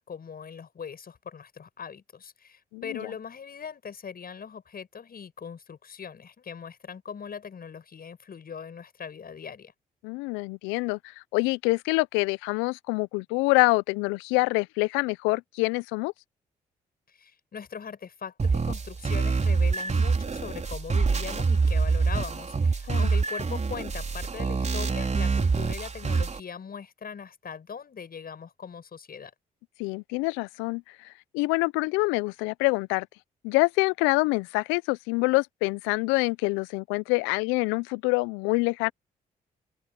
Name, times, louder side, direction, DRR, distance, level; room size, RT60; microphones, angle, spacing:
voice 1, 0.0-9.7 17.1-29.3, left 6 dB, 50° left, 7.9 m, -40 dB
voice 2, 2.7-3.1 10.0-16.1 22.9-23.1 29.8-33.1 33.4-38.9, left 26 dB, 80° left, 0.7 m, -26 dB
sound 1, 18.4-26.4, right 4 dB, 35° right, 4.1 m, -26 dB
hypercardioid pair, 45°, 20 cm